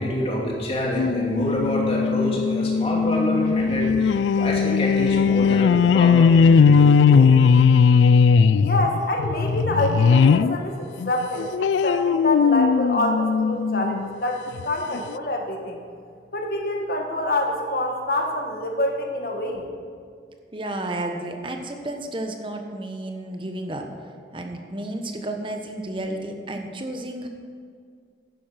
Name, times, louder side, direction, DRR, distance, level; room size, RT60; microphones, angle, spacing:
voice 1, 0.0-7.3 8.4-8.5, equal, 35° left, -3 dB, 2.6 m, -27 dB
sound 1, 1.0-10.6 11.0-14.1 14.6-14.7 14.9-15.0, left 5 dB, 90° left, 0.3 m, -18 dB
voice 2, 8.6-15.8 16.3-19.6, left 1 dB, 55° left, 2 dB, 1.6 m, -26 dB
voice 3, 20.5-23.8 24.3-27.3, right 1 dB, 30° right, 4 dB, 1.1 m, -32 dB
11.0 x 10.0 x 5.9 m, 2.1 s
head